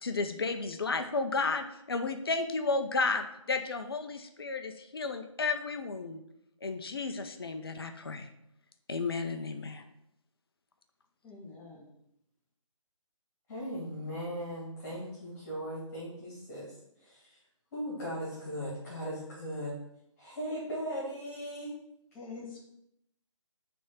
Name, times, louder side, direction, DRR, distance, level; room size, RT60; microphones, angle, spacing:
voice 1, 0.0-6.2 6.6-8.3 8.9-9.8, left 3 dB, 45° left, 7 dB, 0.6 m, -33 dB
voice 2, 11.2-11.9 22.1-22.6, left 4 dB, 10° left, -3 dB, 0.7 m, -45 dB
voice 3, 13.5-16.7 17.0-17.4 17.7-19.7 20.2-21.7, equal, 30° left, -7 dB, 2.3 m, -38 dB
6.1 x 3.5 x 5.7 m, 0.78 s
figure-of-eight pair, 145°, 17 cm